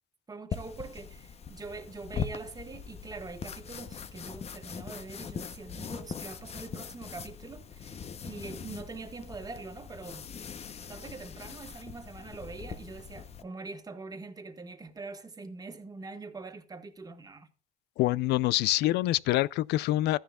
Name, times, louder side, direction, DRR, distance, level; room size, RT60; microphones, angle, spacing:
voice 1, 0.3-10.3 10.9-17.5, right 3 dB, 20° right, 1.6 m, -43 dB
sound 1, 0.5-13.4, left 6 dB, 40° left, 0.9 m, -41 dB
voice 2, 18.0-20.2, left 16 dB, 80° left, 0.5 m, -26 dB
14.5 x 10.0 x 2.4 m
cardioid pair, 110°, 17 cm